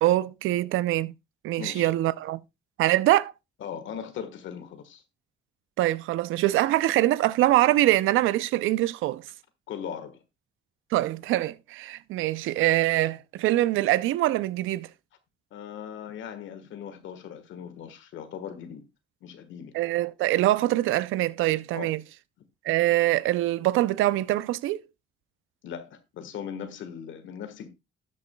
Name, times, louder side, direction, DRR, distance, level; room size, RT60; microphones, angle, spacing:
voice 1, 0.0-1.1 1.4-2.4 2.8-3.3 5.8-9.2 10.9-14.9 19.7-22.0 22.6-24.8, right 15 dB, 90° right, 0.5 m, -24 dB
voice 2, 1.6-1.9 3.6-5.0 9.7-10.2 15.5-18.9 19.2-19.8 21.7-21.9 25.6-27.7, left 8 dB, 75° left, 1.4 m, -39 dB
13.0 x 8.4 x 2.2 m
cardioid pair, 90°, 20 cm